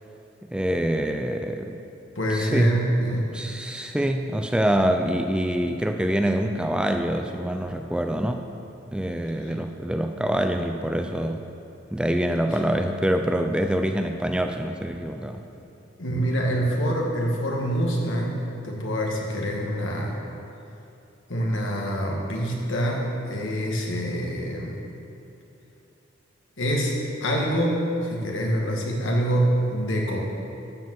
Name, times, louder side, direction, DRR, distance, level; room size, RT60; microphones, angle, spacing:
voice 1, 0.5-1.8 2.3-2.7 3.3-8.4 8.9-11.4 11.9-15.4, right 1 dB, 5° right, 5 dB, 0.4 m, -25 dB
voice 2, 2.2-3.2 3.7-4.0 9.4-9.5 12.5-12.6 16.0-20.2 21.3-24.7 26.6-30.2, equal, 75° left, -1 dB, 1.9 m, -25 dB
12.5 x 5.0 x 7.7 m, 2.9 s
head